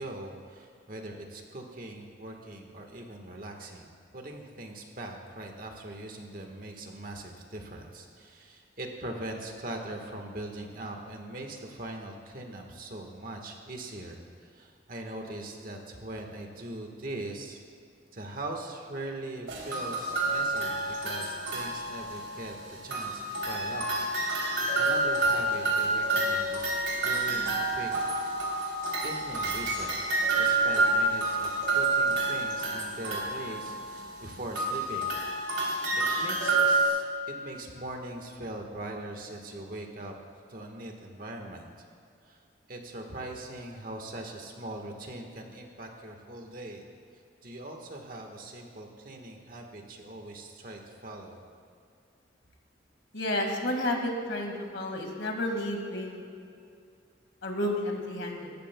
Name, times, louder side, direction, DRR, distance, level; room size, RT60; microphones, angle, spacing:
voice 1, 0.0-17.6 18.1-23.9 24.2-27.9 29.0-29.9 30.4-35.1 35.9-40.1 40.5-41.7 42.2-42.4 42.7-46.8 47.4-51.4, right 1 dB, 50° right, 2 dB, 1.4 m, -41 dB
sound 1, 19.5-22.5 22.9-36.9, right 2 dB, 85° right, 3.2 m, -28 dB
voice 2, 53.1-56.2 57.4-58.5, left 1 dB, 70° left, 2 dB, 1.9 m, -31 dB
19.5 x 14.0 x 2.3 m, 2.5 s
head